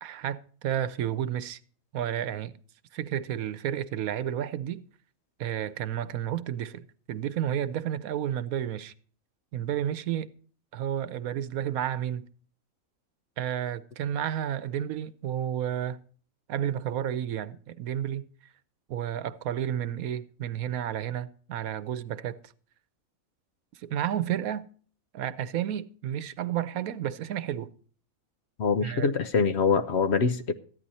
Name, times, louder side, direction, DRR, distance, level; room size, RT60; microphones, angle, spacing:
voice 1, 0.0-1.6 1.9-2.5 2.9-4.8 5.4-8.9 9.5-10.3 10.7-12.3 13.4-16.0 16.5-18.3 18.9-22.4 23.8-24.7 25.1-27.7 28.8-29.1, right 10 dB, 90° right, 1.2 m, -31 dB
voice 2, 28.6-30.6, left 5 dB, 55° left, 1.0 m, -24 dB
13.5 x 10.5 x 4.1 m
omnidirectional pair, 1.4 m